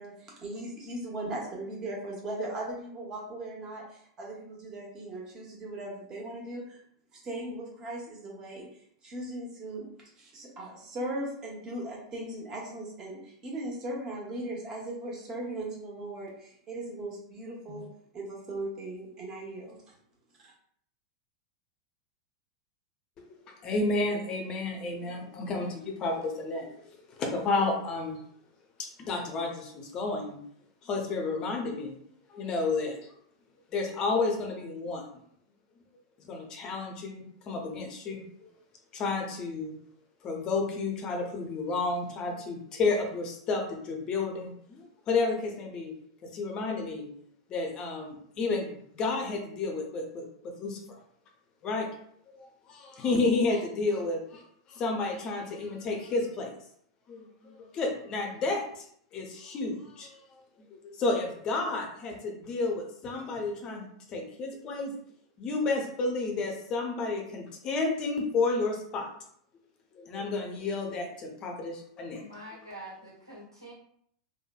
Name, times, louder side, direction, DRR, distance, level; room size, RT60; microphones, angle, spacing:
voice 1, 0.0-6.8 7.1-8.6 9.0-9.9 10.2-17.9 18.1-19.8 20.4-20.5, right 1 dB, 30° right, -2 dB, 1.0 m, -38 dB
voice 2, 23.6-28.2 28.8-30.4 30.8-32.0 32.3-33.1 33.7-35.0 36.2-38.6 38.9-39.7 40.2-45.9 46.2-47.1 47.5-48.7 48.9-50.3 50.6-50.8 51.6-51.9 52.3-54.4 54.7-56.5 57.1-58.8 59.1-60.2 60.6-65.0 65.4-69.1 69.9-72.2, left 3 dB, 30° left, 2 dB, 0.6 m, -31 dB
voice 3, 72.1-73.7, right 1 dB, 90° right, -6 dB, 1.0 m, -45 dB
3.0 x 2.1 x 2.3 m, 0.65 s
figure-of-eight pair, 90°, 2 cm